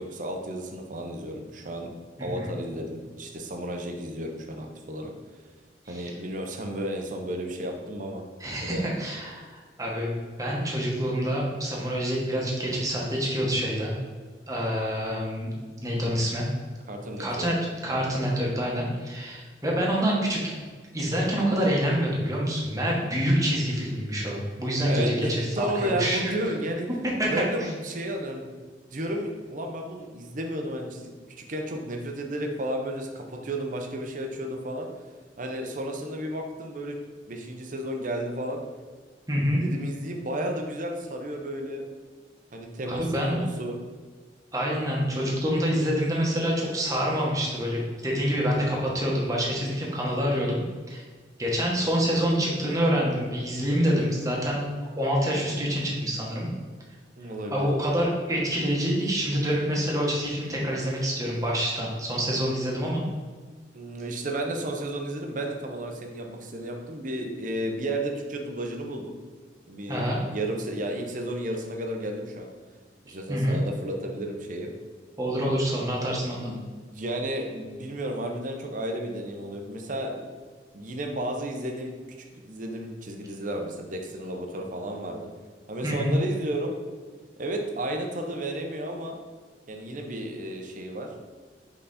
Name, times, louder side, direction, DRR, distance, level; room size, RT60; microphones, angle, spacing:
voice 1, 0.0-1.9 2.2-5.1 5.9-8.2 8.6-8.9 16.9-17.5 24.9-26.9 27.3-28.5 28.9-34.9 35.4-36.9 37.3-38.6 39.6-41.8 42.5-43.8 57.2-57.7 63.7-69.1 69.7-72.5 73.0-74.7 76.4-80.3 80.7-81.9 82.3-85.3 85.7-86.7 87.4-89.1 89.7-91.1, right 1 dB, 50° right, 2 dB, 0.8 m, -32 dB
voice 2, 2.2-2.5 5.9-6.1 8.4-10.1 10.4-13.9 14.5-15.5 15.8-16.4 17.2-17.5 17.8-20.5 20.9-26.2 27.2-27.3 39.3-39.6 42.9-43.4 44.5-50.6 50.9-51.0 51.4-54.7 55.0-56.5 57.5-63.0 69.9-70.2 73.3-73.6 75.2-76.5 85.8-86.1, equal, 20° right, -3 dB, 1.3 m, -26 dB
5.6 x 4.1 x 4.1 m, 1.5 s
head